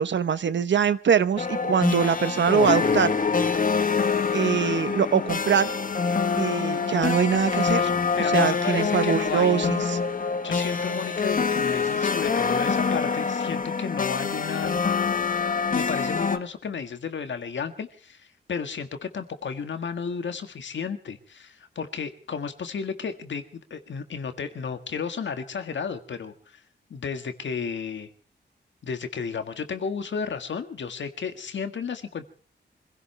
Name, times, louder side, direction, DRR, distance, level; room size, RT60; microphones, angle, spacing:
voice 1, 0.0-3.1 4.3-5.7 6.4-7.9 8.3-10.0, right 7 dB, 80° right, 14 dB, 1.0 m, -23 dB
sound 1, 1.4-16.4, left 5 dB, 45° left, 1.2 m, -25 dB
voice 2, 8.2-9.8 10.4-14.8 15.7-26.6 26.9-28.1 28.8-32.2, left 6 dB, 85° left, 8 dB, 1.8 m, -33 dB
26.0 x 16.5 x 3.4 m, 0.40 s
wide cardioid pair, 130°, 19 cm